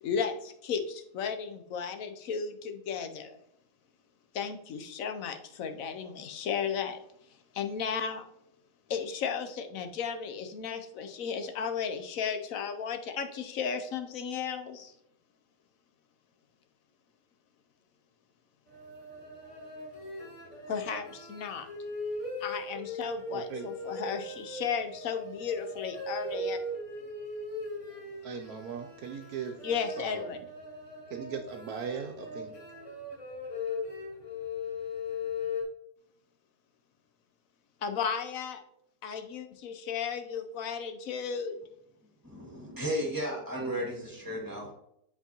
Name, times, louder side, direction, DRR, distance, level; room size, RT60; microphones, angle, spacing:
voice 1, 0.0-3.4 4.3-7.0 7.5-8.2 8.9-14.9 20.7-21.7 22.4-26.6 29.6-30.4 37.8-38.6 39.0-41.6, left 6 dB, 65° left, 1.0 m, -34 dB
sound 1, 18.7-35.6, left 2 dB, 45° left, 2.1 m, -39 dB
voice 2, 23.3-23.8 28.2-29.6 30.0-30.4 31.1-32.5, right 6 dB, 70° right, 1.0 m, -39 dB
voice 3, 42.2-44.7, equal, 10° right, 1.8 m, -34 dB
7.9 x 4.6 x 2.9 m
omnidirectional pair, 1.8 m